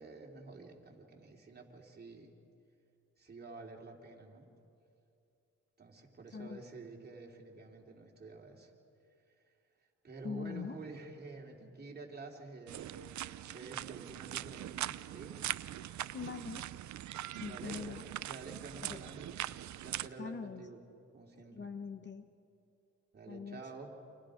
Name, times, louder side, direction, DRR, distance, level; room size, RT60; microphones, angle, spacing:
voice 1, 0.0-2.3 3.2-4.5 5.8-8.7 10.0-15.4 15.8-16.0 17.5-18.0 18.2-19.4 19.7-20.8 21.1-21.7 23.1-23.9, right 3 dB, 30° right, 0 dB, 3.4 m, -49 dB
voice 2, 10.2-10.8 16.1-16.6 17.4-18.0 18.8-19.0 20.2-20.7 21.4-22.3 23.3-23.6, left 5 dB, 35° left, 9 dB, 1.1 m, -42 dB
sound 1, 12.7-20.1, right 13 dB, 65° right, 0.6 m, -42 dB
29.0 x 26.5 x 5.1 m, 2.6 s
cardioid pair, 100°, 31 cm